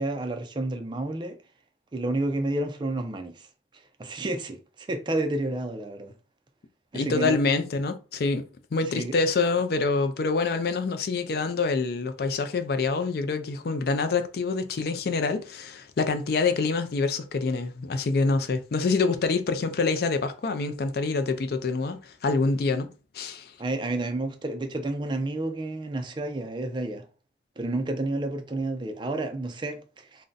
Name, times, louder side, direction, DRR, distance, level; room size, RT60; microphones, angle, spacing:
voice 1, 0.0-1.4 1.9-3.5 4.0-6.1 6.9-7.4 8.9-9.1 23.6-27.0 27.6-30.2, right 2 dB, 25° right, 0.4 m, -30 dB
voice 2, 6.9-8.5 8.7-22.9 23.1-23.5, left 4 dB, 60° left, 0.4 m, -26 dB
2.5 x 2.1 x 3.8 m
head